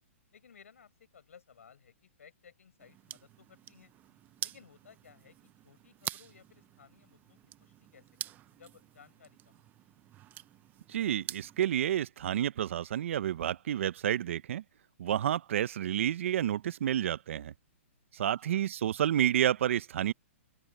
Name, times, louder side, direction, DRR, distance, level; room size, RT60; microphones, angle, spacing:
voice 1, 0.3-3.9 4.4-9.7 18.2-18.6, left 7 dB, 80° left, 6.2 m, -59 dB
sound 1, 2.8-11.6, right 13 dB, 25° right, 0.7 m, -46 dB
voice 2, 10.9-14.6 15.0-17.5 18.2-20.1, right 10 dB, 65° right, 0.8 m, -30 dB
open air
hypercardioid pair, 135°, 7 cm